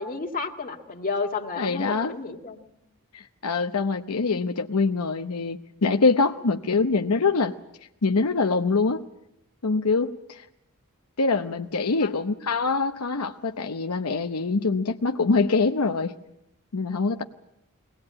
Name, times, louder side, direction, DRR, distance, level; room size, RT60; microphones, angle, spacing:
voice 1, 0.0-2.7 11.9-12.5, left 4 dB, 40° left, 3 dB, 2.0 m, -32 dB
voice 2, 1.6-2.2 3.1-7.5 8.0-9.0 9.6-10.4 11.2-16.1 16.7-17.2, left 4 dB, 90° left, 5 dB, 0.8 m, -24 dB
22.5 x 18.5 x 8.8 m, 0.84 s
head